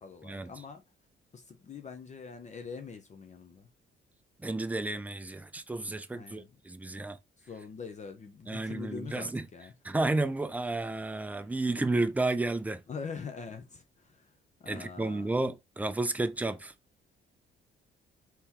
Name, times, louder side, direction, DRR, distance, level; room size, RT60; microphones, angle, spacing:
voice 1, 0.0-0.8 1.3-3.7 6.1-6.5 7.5-9.7 12.9-14.3 14.6-15.3, left 5 dB, 35° left, 0.6 m, -43 dB
voice 2, 4.4-7.2 8.5-9.5 9.8-12.8 14.7-16.7, right 2 dB, 10° right, 0.4 m, -32 dB
3.5 x 2.9 x 2.9 m
cardioid pair, 90°, 20 cm